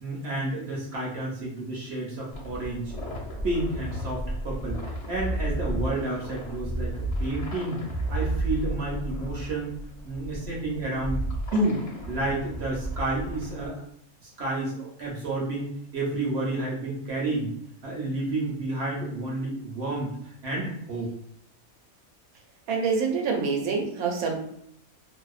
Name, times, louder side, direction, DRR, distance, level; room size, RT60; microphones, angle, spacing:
voice 1, 0.0-2.9 3.4-7.8 8.1-9.8 10.0-11.2 11.5-13.8 14.2-17.5 17.8-20.1 20.4-21.1, right 2 dB, 60° right, -3 dB, 0.7 m, -30 dB
sound 1, 2.3-13.7, right 1 dB, 45° left, 0.4 m, -33 dB
voice 2, 22.7-24.4, right 5 dB, 85° right, 1 dB, 1.1 m, -26 dB
2.7 x 2.0 x 2.3 m, 0.70 s
omnidirectional pair, 1.5 m